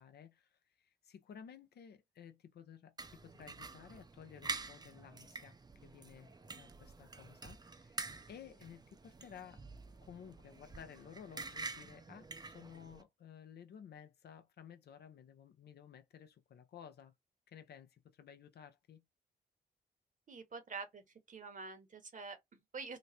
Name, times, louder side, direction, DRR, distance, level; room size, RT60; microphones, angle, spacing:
voice 1, 0.0-5.6 5.8-9.6 10.0-17.1 17.5-19.0, left 8 dB, 70° left, 0.7 m, -55 dB
sound 1, 3.0-13.0, right 3 dB, 25° right, 0.5 m, -47 dB
voice 2, 20.3-23.0, right 4 dB, 50° right, 1.1 m, -47 dB
3.1 x 2.1 x 4.1 m
cardioid pair, 60°, 17 cm